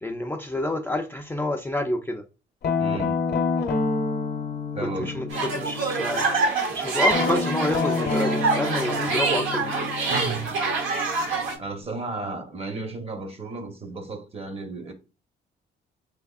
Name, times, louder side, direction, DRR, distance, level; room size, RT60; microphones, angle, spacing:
voice 1, 0.0-2.2 5.0-6.2 6.7-9.9, left 1 dB, 10° left, 0.4 m, -28 dB
Guitar, 2.6-6.4 7.1-11.8, left 4 dB, 55° left, 0.8 m, -29 dB
voice 2, 2.8-3.2 4.7-5.2 10.1-10.5 11.2-11.3 11.6-14.9, right 3 dB, 30° right, 0.9 m, -34 dB
sound 1, 5.3-11.6, right 3 dB, 85° right, 1.0 m, -26 dB
3.4 x 3.3 x 2.4 m
cardioid pair, 90°, 20 cm